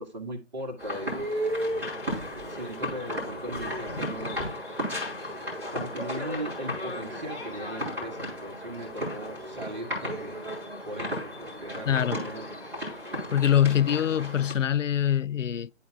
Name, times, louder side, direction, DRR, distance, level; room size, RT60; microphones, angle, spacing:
voice 1, 0.0-1.6 2.1-2.2 2.5-4.4 5.7-10.5 10.8-12.5, right 1 dB, 35° right, 1.6 m, -38 dB
sound 1, 0.8-14.5, equal, 5° right, 2.9 m, -34 dB
voice 2, 11.9-12.2 13.3-15.7, left 10 dB, 80° left, 0.5 m, -24 dB
11.5 x 4.1 x 2.3 m
figure-of-eight pair, 150°, 37 cm